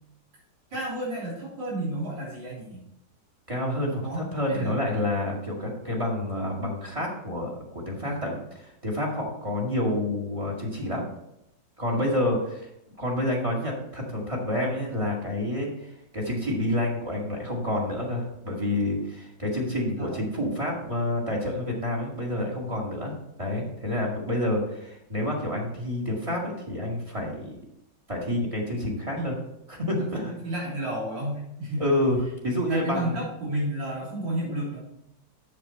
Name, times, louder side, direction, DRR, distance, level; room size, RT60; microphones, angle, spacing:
voice 1, 0.7-2.8 4.0-4.8 8.0-8.3 11.8-12.1 19.8-20.2 29.2-29.4 30.0-32.0 32.7-34.8, right 1 dB, 85° right, -7 dB, 3.9 m, -32 dB
voice 2, 3.5-8.4 8.8-11.1 11.8-12.7 13.0-15.7 16.1-27.6 28.1-29.3 29.7-30.3 31.8-32.2 32.4-33.2, left 1 dB, 20° right, -2 dB, 1.9 m, -28 dB
7.6 x 7.2 x 4.3 m, 0.81 s
omnidirectional pair, 1.9 m